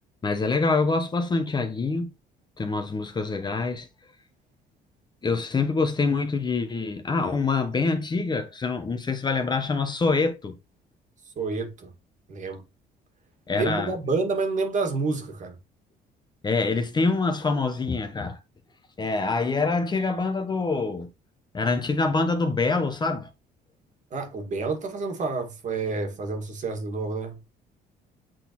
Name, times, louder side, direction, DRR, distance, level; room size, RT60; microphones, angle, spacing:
voice 1, 0.2-2.1 2.6-3.9 5.2-10.5 13.5-13.9 16.4-18.4 19.0-21.1 21.5-23.3, left 3 dB, 25° left, 1.0 m, -25 dB
voice 2, 11.4-11.9 12.3-12.6 13.5-15.6 24.1-27.4, right 4 dB, 45° right, 1.9 m, -29 dB
7.7 x 4.1 x 3.0 m
cardioid pair, 110°, 17 cm